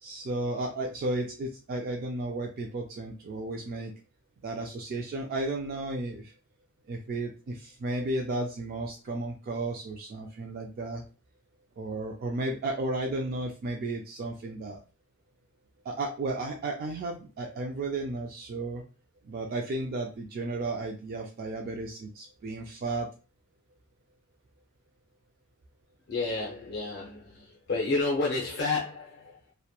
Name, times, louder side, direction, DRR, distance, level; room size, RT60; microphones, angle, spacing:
voice 1, 0.0-3.9 4.4-6.3 6.9-11.0 11.8-14.8 15.9-18.8 19.3-23.1, right 2 dB, 45° right, 2 dB, 0.3 m, -33 dB
voice 2, 26.1-29.5, left 3 dB, 55° left, -3 dB, 0.5 m, -30 dB
2.9 x 2.1 x 2.2 m, 0.34 s
head